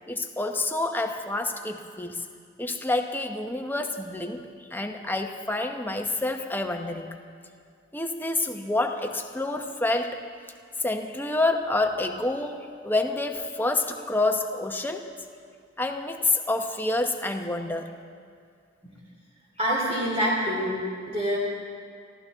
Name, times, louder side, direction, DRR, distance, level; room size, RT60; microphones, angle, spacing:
voice 1, 0.1-2.3 2.6-7.1 7.9-10.2 10.8-15.1 15.8-17.9, left 2 dB, 10° left, 4 dB, 0.9 m, -28 dB
voice 2, 19.6-21.4, equal, 30° right, -5 dB, 2.9 m, -26 dB
24.0 x 15.0 x 3.6 m, 2.2 s
head